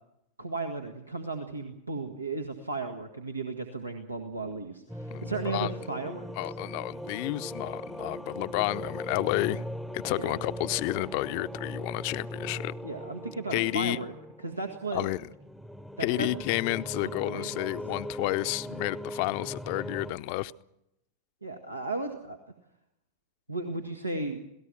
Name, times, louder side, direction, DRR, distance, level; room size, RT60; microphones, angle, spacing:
voice 1, 0.4-6.3 10.1-10.4 12.8-14.1 14.4-15.1 16.0-16.3 17.0-17.7 21.4-22.4 23.5-24.4, right 3 dB, 85° right, 1.8 m, -35 dB
sound 1, 4.9-20.1, equal, ahead, 0.9 m, -39 dB
voice 2, 5.1-5.7 6.4-9.6 9.9-12.7 13.5-14.0 14.9-15.3 16.0-20.5, left 19 dB, 45° left, 0.7 m, -31 dB
27.5 x 18.0 x 6.2 m
figure-of-eight pair, 90°, 0 cm